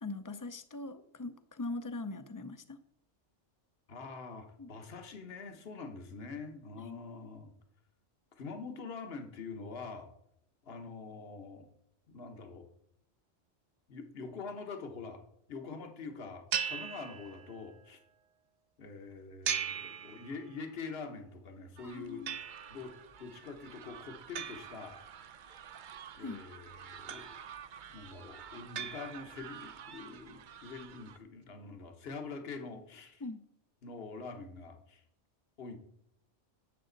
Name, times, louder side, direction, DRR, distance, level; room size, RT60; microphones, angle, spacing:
voice 1, 0.0-2.8 4.6-4.7 6.8-7.0 21.8-22.4 26.2-26.4 33.2-33.4, left 2 dB, 20° left, 11 dB, 0.6 m, -41 dB
voice 2, 3.9-7.5 8.4-10.1 10.6-11.7 12.1-12.7 13.9-15.2 15.5-18.0 18.8-22.4 22.7-22.9 23.2-25.0 26.1-27.4 27.9-33.2 33.8-35.0 35.6-35.8, left 4 dB, 60° left, 6 dB, 1.4 m, -45 dB
sound 1, 16.5-17.7 19.5-20.7 22.3-23.0 24.4-25.5 27.1-27.8 28.8-29.6, right 8 dB, 85° right, 1.1 m, -39 dB
sound 2, 21.8-31.2, right 8 dB, 55° right, 0.7 m, -51 dB
11.0 x 7.7 x 4.0 m, 0.74 s
omnidirectional pair, 1.2 m